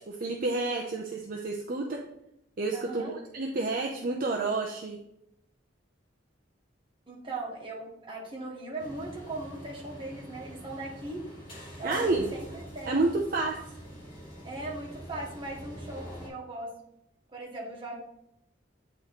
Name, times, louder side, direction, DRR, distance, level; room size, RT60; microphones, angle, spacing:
voice 1, 0.1-2.1 2.6-5.0 11.8-12.3 12.9-13.6, right 3 dB, 50° right, 0 dB, 0.6 m, -29 dB
voice 2, 2.7-3.1 7.1-11.2 11.8-13.1 14.4-16.7 17.3-17.9, right 2 dB, 30° right, -4 dB, 1.7 m, -39 dB
sound 1, 8.8-16.3, equal, 30° left, 2.2 m, -45 dB
8.8 x 3.2 x 4.0 m, 0.80 s
head